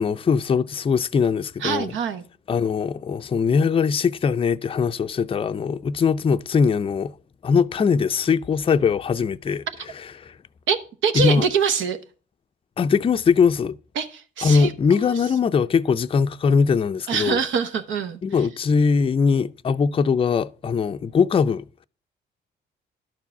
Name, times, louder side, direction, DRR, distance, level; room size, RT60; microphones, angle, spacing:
voice 1, 0.0-1.9 2.5-7.1 7.4-9.6 10.2-10.3 11.1-11.5 12.8-13.7 14.4-17.4 18.2-21.8, left 5 dB, 30° left, 0.4 m, -21 dB
voice 2, 1.6-2.2 10.7-12.0 14.0-14.7 17.1-18.2, right 6 dB, 75° right, 1.0 m, -24 dB
11.5 x 4.6 x 7.0 m
cardioid pair, 90°, 20 cm